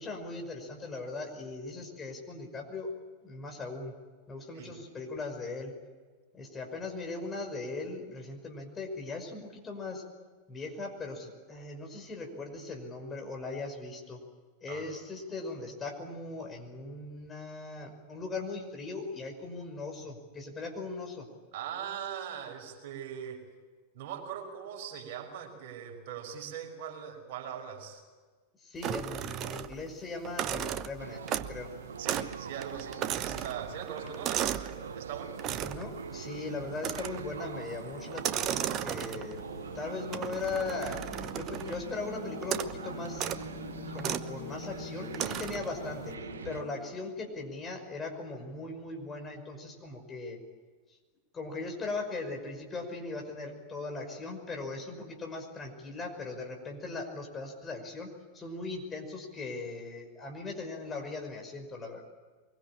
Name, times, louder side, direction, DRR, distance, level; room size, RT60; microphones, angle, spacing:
voice 1, 0.0-2.9 3.2-3.9 4.3-5.7 6.3-10.0 10.5-14.2 14.6-21.3 28.6-31.7 35.6-39.4 39.7-41.0 41.3-43.4 43.9-46.2 46.4-50.4 51.3-62.1, left 3 dB, 20° left, 3 dB, 5.6 m, -39 dB
voice 2, 21.5-23.4 23.9-28.0 32.0-35.4, right 8 dB, 50° right, 2 dB, 5.4 m, -41 dB
sound 1, 28.8-29.9 30.2-31.7 32.1-32.4 32.6-34.8 35.4-35.9 36.8-37.3 38.1-39.4 40.1-41.8 42.4-42.8 43.1-43.4 44.0-44.3 45.1-45.7, right 10 dB, 35° right, 1.1 m, -35 dB
sound 2, 31.0-46.6, right 6 dB, 70° right, 1.3 m, -43 dB
sound 3, 39.2-47.1, left 7 dB, 45° left, 2.4 m, -46 dB
24.5 x 22.5 x 8.8 m, 1.4 s
figure-of-eight pair, 90°, 0 cm